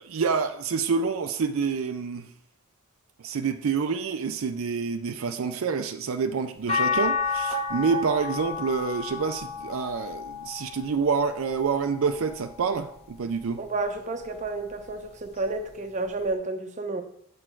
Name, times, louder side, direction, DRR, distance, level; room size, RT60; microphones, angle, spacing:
voice 1, 0.0-2.3 3.2-13.6, right 5 dB, 65° right, 0.4 m, -27 dB
sound 1, 6.7-13.0 13.6-14.9 16.3-16.4, left 4 dB, 30° left, 1.4 m, -32 dB
voice 2, 13.6-17.0, right 3 dB, 35° right, 0.7 m, -31 dB
7.7 x 6.2 x 4.5 m
head